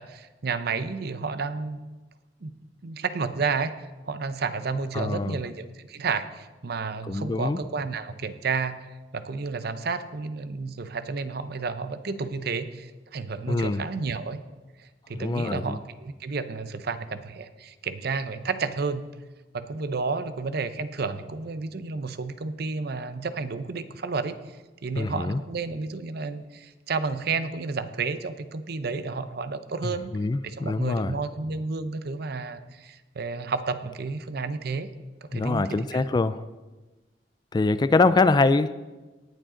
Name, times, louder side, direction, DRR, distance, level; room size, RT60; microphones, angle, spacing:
voice 1, 0.0-1.8 2.4-2.5 2.8-3.7 4.1-8.8 9.1-14.4 15.1-19.0 19.5-24.4 24.8-30.1 30.4-34.9 35.2-36.0, right 4 dB, 60° right, 11 dB, 0.7 m, -31 dB
voice 2, 4.9-5.4 7.1-7.6 13.5-13.8 15.1-15.8 25.0-25.4 29.8-31.1 35.3-36.4 37.5-38.7, left 3 dB, 25° left, 14 dB, 0.3 m, -24 dB
18.5 x 7.6 x 3.8 m, 1.2 s
head